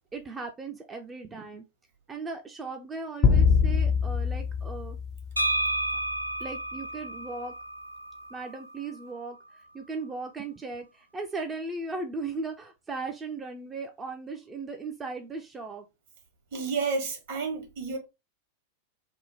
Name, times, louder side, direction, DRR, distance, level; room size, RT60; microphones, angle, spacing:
voice 1, 0.1-1.6 2.1-5.0 6.4-7.5 8.3-15.9, right 3 dB, 15° right, 0.5 m, -37 dB
sound 1, 3.2-5.8, left 6 dB, 35° left, 0.5 m, -24 dB
sound 2, 5.4-9.1, right 1 dB, 90° left, 0.3 m, -32 dB
voice 2, 16.5-18.0, right 4 dB, 55° right, 1.6 m, -30 dB
3.6 x 2.2 x 4.1 m
figure-of-eight pair, 90°, 0 cm